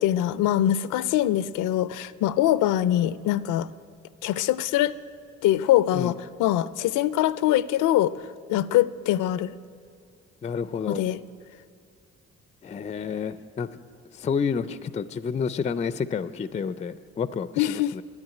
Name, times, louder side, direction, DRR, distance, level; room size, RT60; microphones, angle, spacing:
voice 1, 0.0-3.7 4.2-5.0 5.4-8.1 8.5-9.5 10.9-11.2 17.6-17.9, left 13 dB, 85° left, 17 dB, 0.5 m, -23 dB
voice 2, 10.4-11.0 12.6-13.7 14.1-18.0, left 6 dB, 25° left, 15 dB, 0.3 m, -29 dB
10.5 x 9.5 x 9.0 m, 2.3 s
cardioid pair, 90°, 30 cm